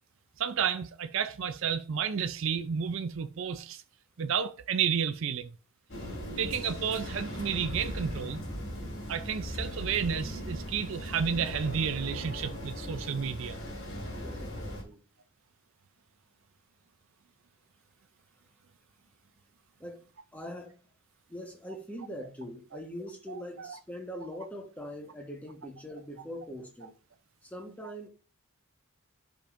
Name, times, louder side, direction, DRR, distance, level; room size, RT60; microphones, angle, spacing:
voice 1, 0.4-3.8 4.2-5.5 6.4-8.4 9.1-13.6 23.3-23.7, right 7 dB, 60° right, 0.4 m, -31 dB
sound 1, 5.9-14.8, equal, 55° left, 3.3 m, -38 dB
voice 2, 14.2-15.0 19.8-20.0 20.3-20.8 21.3-27.0 27.4-28.1, equal, 5° left, 1.2 m, -42 dB
11.5 x 5.1 x 2.5 m
head